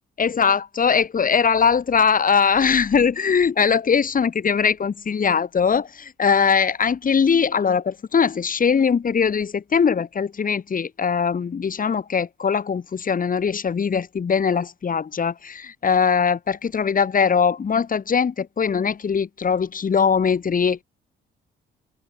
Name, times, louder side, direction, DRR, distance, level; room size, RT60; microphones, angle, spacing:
voice 1, 0.2-20.8, left 6 dB, 45° left, 6.5 m, -21 dB
cardioid pair, 90°, 20 cm